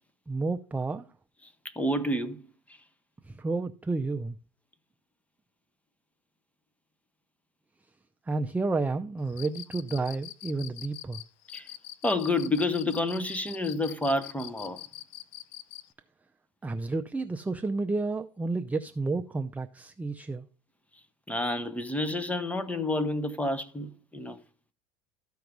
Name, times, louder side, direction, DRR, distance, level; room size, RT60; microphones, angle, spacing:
voice 1, 0.3-1.1 3.2-4.4 8.2-11.2 16.6-20.5, right 3 dB, 10° right, 0.5 m, -31 dB
voice 2, 1.7-2.5 11.5-11.7 12.0-14.8 21.3-24.4, left 2 dB, 10° left, 1.0 m, -29 dB
Cricket, 9.3-15.9, left 15 dB, 80° left, 0.8 m, -43 dB
13.5 x 4.7 x 5.2 m
supercardioid pair, 110°, 17 cm